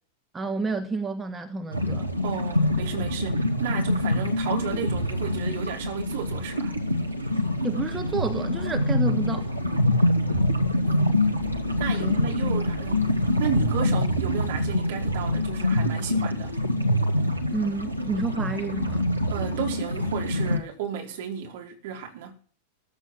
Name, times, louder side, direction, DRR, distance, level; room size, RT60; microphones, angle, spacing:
voice 1, 0.3-2.1 7.6-9.5 12.0-12.2 17.5-19.0, right 4 dB, 15° right, 1.2 m, -30 dB
sound 1, 1.7-20.6, left 1 dB, 90° right, 1.9 m, -25 dB
voice 2, 2.2-6.7 10.9-11.1 11.8-16.6 19.3-22.5, right 9 dB, 55° right, 4.5 m, -33 dB
15.0 x 13.5 x 6.3 m
figure-of-eight pair, 90°, 0 cm